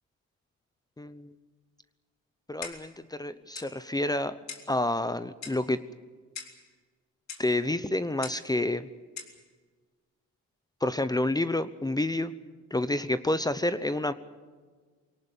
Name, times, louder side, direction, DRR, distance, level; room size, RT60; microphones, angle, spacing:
voice 1, 1.0-1.3 2.5-4.4 4.7-5.8 7.4-8.9 10.8-12.3 12.7-14.1, left 1 dB, 15° left, 13 dB, 0.9 m, -29 dB
Clock, 2.6-3.0 3.5-3.7 4.5-4.7 5.4-5.7 6.3-6.6 7.3-7.5 8.2-8.5 9.2-9.4, left 6 dB, 65° left, 3.7 m, -41 dB
23.5 x 18.5 x 9.0 m, 1.4 s
cardioid pair, 90°, 30 cm